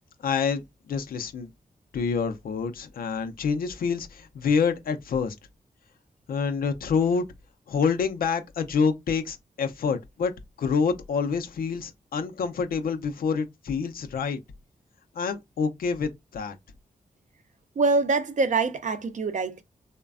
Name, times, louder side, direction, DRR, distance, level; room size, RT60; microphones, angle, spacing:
voice 1, 0.2-1.5 1.9-5.4 6.3-7.2 7.7-10.3 10.6-14.4 15.1-16.6, left 5 dB, 80° left, 0.5 m, -27 dB
voice 2, 17.8-19.6, right 3 dB, 55° right, 0.5 m, -24 dB
3.1 x 2.1 x 2.4 m
cardioid pair, 50°, 15 cm